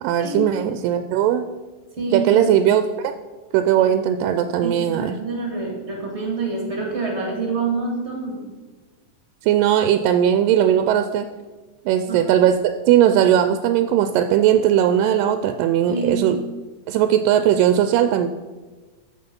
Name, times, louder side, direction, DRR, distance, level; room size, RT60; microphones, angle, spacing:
voice 1, 0.0-1.4 2.1-3.1 3.5-5.2 9.4-11.3 11.9-12.6 12.9-16.4 16.9-18.3, right 10 dB, 85° right, 9 dB, 2.2 m, -18 dB
voice 2, 2.0-2.5 3.8-3.9 4.6-8.4 12.1-12.3 15.9-16.3 16.9-17.0, right 4 dB, 25° right, 0 dB, 1.7 m, -27 dB
13.5 x 6.2 x 5.4 m, 1.3 s
omnidirectional pair, 3.9 m